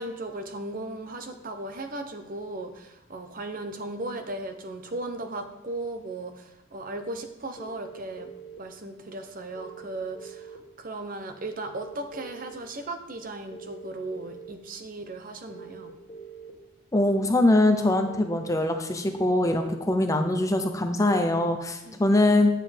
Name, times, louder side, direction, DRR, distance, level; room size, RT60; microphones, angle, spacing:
voice 1, 0.0-8.3 8.6-15.9 21.8-22.1, right 2 dB, 40° right, 7 dB, 0.6 m, -36 dB
sound 1, 7.6-8.6 9.6-10.6 11.5-12.5 13.5-14.5 15.5-16.5 17.5-18.5 19.4-19.5, right 5 dB, 35° left, 1.6 m, -43 dB
voice 2, 16.9-22.6, left 1 dB, 15° left, 6 dB, 0.5 m, -23 dB
9.2 x 7.4 x 3.4 m, 0.93 s
head